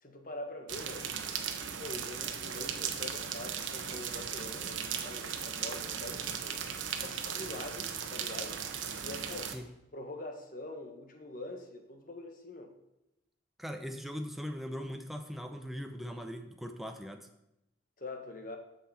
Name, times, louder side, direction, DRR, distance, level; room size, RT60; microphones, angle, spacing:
voice 1, 0.0-1.1 1.8-6.6 7.0-8.6 9.0-9.5 9.9-12.7 18.0-18.6, left 2 dB, 45° left, 5 dB, 1.2 m, -44 dB
sound 1, 0.7-9.6, right 7 dB, 85° right, 0.9 m, -37 dB
voice 2, 13.6-17.3, equal, ahead, 4 dB, 0.6 m, -40 dB
13.5 x 5.7 x 4.2 m, 0.89 s
head